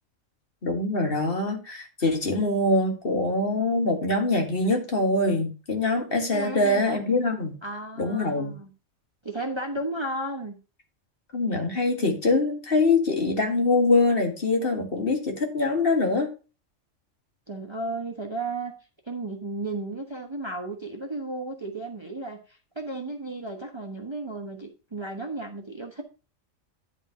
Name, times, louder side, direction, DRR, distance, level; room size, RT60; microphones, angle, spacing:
voice 1, 0.6-7.5 8.0-8.5 11.3-16.3, left 2 dB, 45° left, 2 dB, 2.0 m, -24 dB
voice 2, 6.3-7.0 7.6-8.7 9.2-10.6 17.5-18.7 19.1-26.0, right 2 dB, 25° right, 3 dB, 1.1 m, -34 dB
11.0 x 3.7 x 5.7 m, 0.32 s
omnidirectional pair, 1.3 m